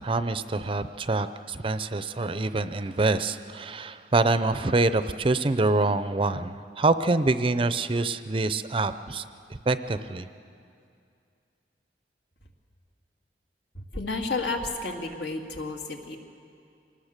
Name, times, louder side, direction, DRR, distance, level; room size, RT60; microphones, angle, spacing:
voice 1, 0.0-9.2 9.7-10.3, right 3 dB, 30° right, 12 dB, 0.5 m, -25 dB
voice 2, 13.7-16.2, left 3 dB, 75° left, 2 dB, 2.2 m, -31 dB
24.5 x 19.5 x 6.6 m, 2.4 s
head